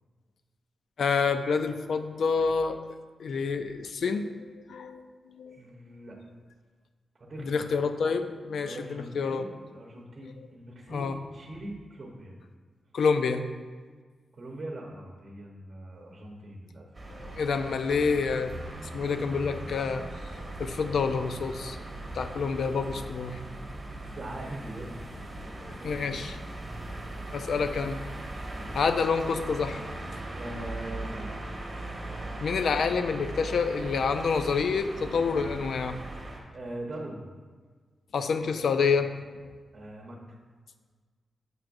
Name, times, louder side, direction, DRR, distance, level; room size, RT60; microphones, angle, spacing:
voice 1, 1.0-2.8 3.2-5.6 7.5-9.4 10.9-11.2 12.9-13.5 17.2-18.5 18.9-20.1 20.3-21.8 22.1-23.4 25.8-26.4 27.3-28.0 28.7-29.8 32.4-36.0 38.1-39.4, left 5 dB, 75° left, 8 dB, 0.4 m, -28 dB
voice 2, 5.5-6.2 7.2-7.6 8.6-12.3 14.3-16.9 23.9-26.3 28.5-28.9 30.3-31.5 36.5-37.2 39.7-40.4, right 1 dB, 40° right, -1 dB, 0.9 m, -42 dB
sound 1, 16.9-36.4, right 1 dB, 25° right, 1.1 m, -39 dB
7.5 x 5.8 x 2.6 m, 1.5 s
wide cardioid pair, 105°, 0 cm